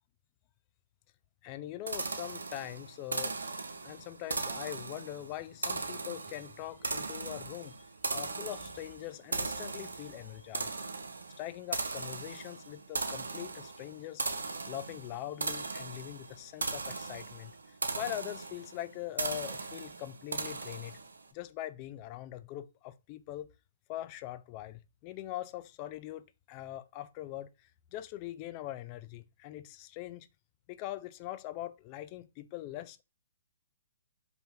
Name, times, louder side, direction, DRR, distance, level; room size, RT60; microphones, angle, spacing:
voice 1, 1.4-3.4 3.8-7.8 8.1-10.8 11.4-14.2 14.7-21.0 21.3-23.5 23.9-30.3 30.7-33.0, left 14 dB, 35° left, 0.4 m, -42 dB
sound 1, 1.9-21.2, right 3 dB, 90° right, 0.6 m, -38 dB
4.2 x 2.7 x 3.4 m
hypercardioid pair, 135°, 0 cm